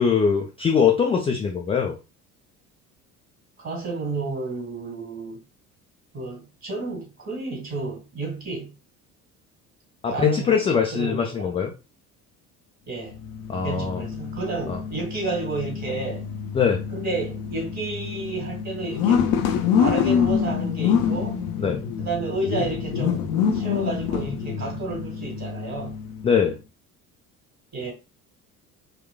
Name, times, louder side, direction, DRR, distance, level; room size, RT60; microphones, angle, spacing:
voice 1, 0.0-1.9 10.0-11.7 13.5-14.0 14.7-14.8 16.5-16.8 21.6-21.8 26.2-26.6, left 6 dB, 15° left, 0.3 m, -22 dB
voice 2, 3.6-5.4 6.1-8.7 10.1-11.5 12.9-13.2 13.6-16.2 16.9-19.3 19.8-21.4 22.0-26.0 27.7-27.9, right 3 dB, 35° right, 1.8 m, -31 dB
sound 1, 13.1-26.4, left 7 dB, 50° left, 0.6 m, -26 dB
4.1 x 2.3 x 2.2 m
figure-of-eight pair, 55°, 45 cm